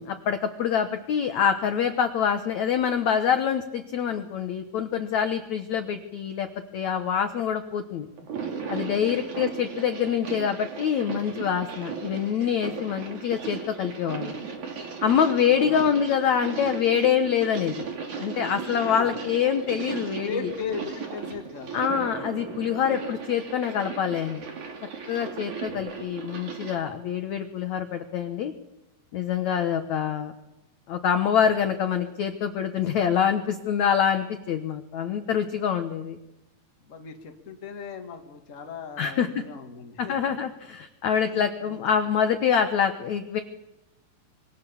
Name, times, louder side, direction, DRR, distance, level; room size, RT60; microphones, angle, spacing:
voice 1, 0.0-6.5 6.7-8.1 8.7-14.4 15.0-17.9 18.2-20.5 21.7-24.5 25.1-28.5 29.1-30.3 30.9-36.2 39.0-39.3 40.0-43.4, left 8 dB, 75° left, 8 dB, 1.7 m, -25 dB
sound 1, 8.2-26.8, right 5 dB, 45° right, 4.0 m, -36 dB
voice 2, 8.9-9.2 12.6-12.8 15.5-15.8 18.7-19.1 20.2-21.8 36.8-40.3 41.2-41.8, left 5 dB, 35° left, 4 dB, 1.3 m, -38 dB
25.5 x 23.5 x 7.2 m, 0.93 s
omnidirectional pair, 5.1 m